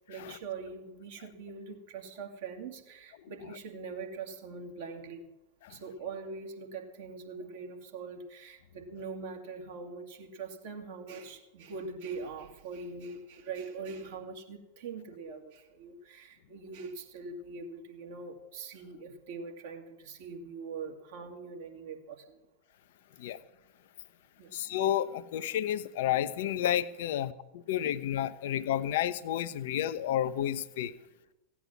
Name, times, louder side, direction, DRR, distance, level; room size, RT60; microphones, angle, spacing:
voice 1, 0.1-5.3 5.7-22.4 24.4-24.5, right 4 dB, 55° right, 3 dB, 2.2 m, -42 dB
voice 2, 24.5-27.3 27.7-30.9, left 11 dB, 55° left, 14 dB, 0.7 m, -30 dB
16.0 x 8.5 x 7.3 m, 0.97 s
figure-of-eight pair, 90°, 0 cm